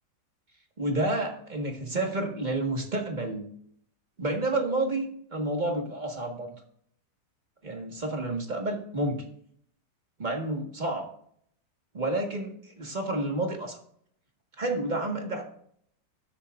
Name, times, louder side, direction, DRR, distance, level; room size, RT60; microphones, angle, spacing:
voice 1, 0.8-3.4 4.2-6.5 7.6-9.2 10.2-11.1 11.9-13.8 14.6-15.4, right 2 dB, 25° right, 2 dB, 1.7 m, -30 dB
13.0 x 10.0 x 2.5 m, 0.65 s
omnidirectional pair, 1.9 m